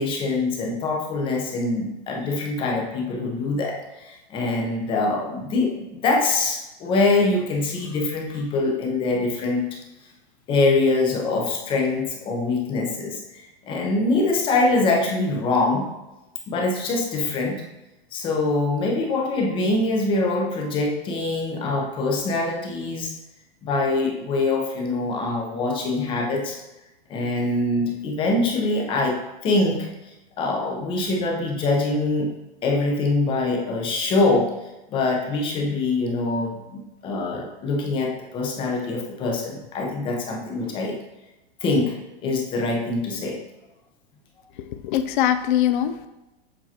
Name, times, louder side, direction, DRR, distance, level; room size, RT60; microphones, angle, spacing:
voice 1, 0.0-9.7 10.5-15.9 16.5-17.6 18.1-23.1 23.6-26.6 27.1-29.9 30.4-32.3 32.6-34.5 34.9-41.0 41.6-42.0 42.2-43.4, left 2 dB, 15° left, 0 dB, 0.7 m, -24 dB
voice 2, 44.7-46.1, left 11 dB, 55° left, 9 dB, 0.4 m, -22 dB
7.6 x 4.6 x 2.8 m, 1.0 s
supercardioid pair, 160°, 31 cm